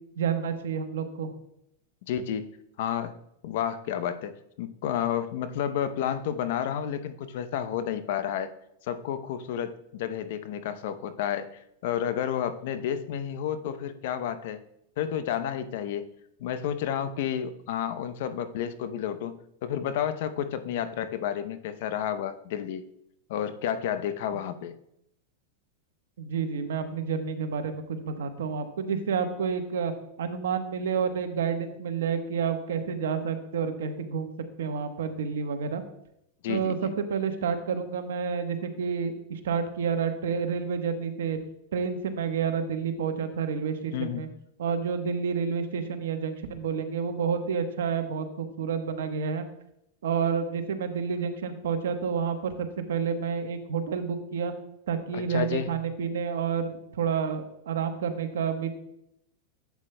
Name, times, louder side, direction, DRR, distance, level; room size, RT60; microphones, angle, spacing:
voice 1, 0.2-1.3 26.2-29.9 30.2-34.3 34.6-35.8 36.5-41.4 41.7-44.3 44.6-49.5 50.0-54.5 54.9-58.7, right 6 dB, 80° right, 7 dB, 1.0 m, -29 dB
voice 2, 2.1-2.5 2.8-3.1 3.4-4.3 4.6-8.5 8.9-14.6 15.0-16.1 16.4-22.8 23.3-24.7 36.4-36.8 43.9-44.2 55.1-55.7, left 9 dB, 65° left, 12 dB, 0.7 m, -31 dB
11.5 x 8.3 x 2.2 m, 0.79 s
hypercardioid pair, 115°, 0 cm